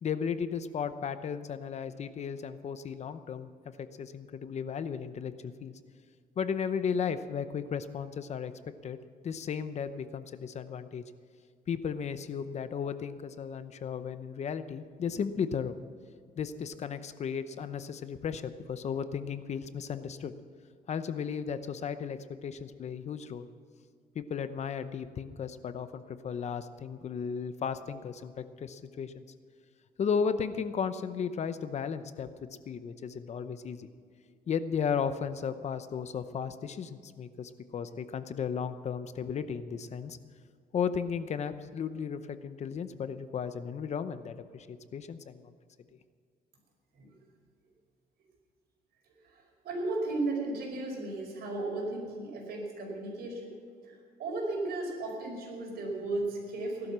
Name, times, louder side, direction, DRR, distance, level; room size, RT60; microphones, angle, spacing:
voice 1, 0.0-5.7 6.4-8.5 8.8-9.0 9.2-11.0 11.7-15.8 16.4-20.3 20.9-23.5 24.1-29.2 30.0-32.3 32.7-33.9 34.5-40.2 40.7-45.5, left 7 dB, 45° left, 11 dB, 0.8 m, -35 dB
voice 2, 46.9-47.2 49.0-53.6 53.8-56.9, right 2 dB, 75° right, 0 dB, 5.3 m, -35 dB
17.5 x 12.0 x 6.2 m, 2.1 s
cardioid pair, 145°, 16 cm